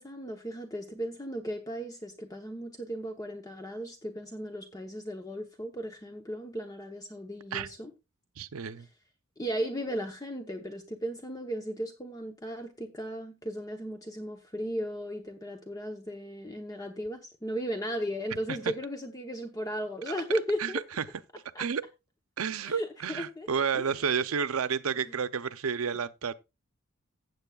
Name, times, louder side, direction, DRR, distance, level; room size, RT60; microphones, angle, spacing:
voice 1, 0.0-7.9 9.4-20.8 21.5-21.7 22.6-23.5 23.7-23.8 25.0-25.2 25.9-26.0, equal, 15° left, 0.9 m, -36 dB
voice 2, 8.4-8.9 18.5-18.6 20.6-21.0 21.6-21.8 22.4-26.3, right 6 dB, 85° right, 0.6 m, -31 dB
16.0 x 7.7 x 2.3 m
head